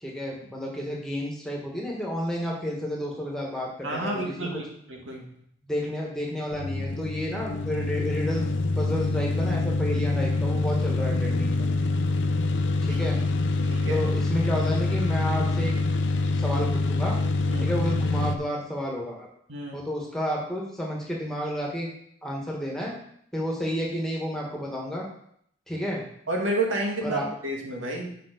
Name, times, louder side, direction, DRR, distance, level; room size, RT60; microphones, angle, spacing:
voice 1, 0.0-4.5 5.7-11.7 12.8-13.2 13.9-15.7 16.4-17.2 17.6-19.3 19.7-21.9 22.2-22.9 23.3-25.1 25.7-26.0 27.0-27.2, equal, 5° left, -3 dB, 1.6 m, -31 dB
voice 2, 3.8-4.6 4.9-5.3 12.9-13.1 13.7-14.1 17.5-17.7 19.5-19.9 26.3-28.1, right 2 dB, 90° right, 0 dB, 1.9 m, -30 dB
sound 1, 6.5-18.3, left 3 dB, 75° left, 0.6 m, -25 dB
7.4 x 5.5 x 5.2 m, 0.68 s
head